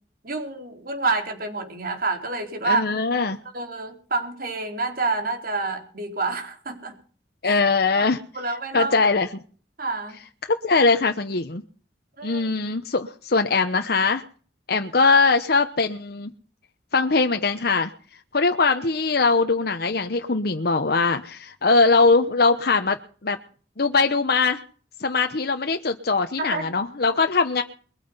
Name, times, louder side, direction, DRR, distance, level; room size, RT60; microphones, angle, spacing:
voice 1, 0.2-2.8 3.5-6.9 7.4-7.6 8.3-8.9 9.8-10.2 12.2-12.5 26.4-26.7, right 3 dB, 55° right, 5 dB, 4.3 m, -28 dB
voice 2, 2.6-3.4 7.4-8.2 8.7-9.3 10.6-11.6 12.2-14.2 14.7-16.3 16.9-17.9 18.3-23.0 23.2-23.4 23.8-24.6 25.0-27.6, left 4 dB, 60° left, 6 dB, 1.0 m, -21 dB
22.0 x 9.2 x 5.7 m, 0.43 s
head